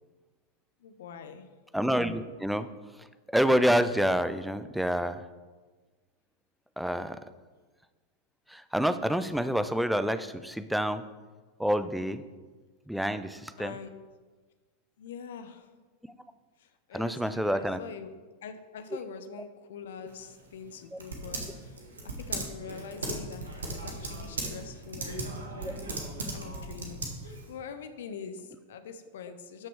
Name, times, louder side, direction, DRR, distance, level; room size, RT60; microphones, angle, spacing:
voice 1, 0.8-1.5 13.6-14.0 15.0-15.7 16.6-18.1 18.4-25.9 26.2-29.7, left 6 dB, 60° left, 10 dB, 0.8 m, -44 dB
voice 2, 1.7-2.7 3.3-5.2 6.8-7.2 8.5-11.0 11.6-12.2 12.9-13.7 16.9-17.8 20.9-21.0, equal, ahead, 11 dB, 0.5 m, -27 dB
Typing, 20.1-27.5, right 2 dB, 70° right, 1.7 m, -38 dB
12.5 x 6.0 x 4.7 m, 1.4 s
figure-of-eight pair, 90°, 0 cm